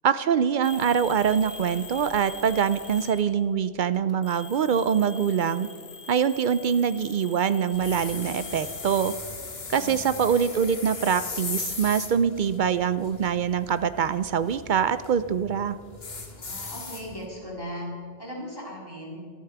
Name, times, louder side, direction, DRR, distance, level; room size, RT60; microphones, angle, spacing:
voice 1, 0.0-5.7 6.1-9.1 9.7-15.8, right 7 dB, 60° right, 14 dB, 0.6 m, -24 dB
sound 1, 0.6-3.5 3.9-9.1, left 4 dB, 55° left, 1.4 m, -43 dB
sound 2, 7.7-17.3, left 4 dB, 75° left, 1.8 m, -38 dB
voice 2, 9.6-10.0 16.3-17.9 18.2-19.2, equal, 20° left, -4 dB, 4.0 m, -38 dB
24.5 x 8.4 x 4.7 m, 2.2 s
omnidirectional pair, 1.0 m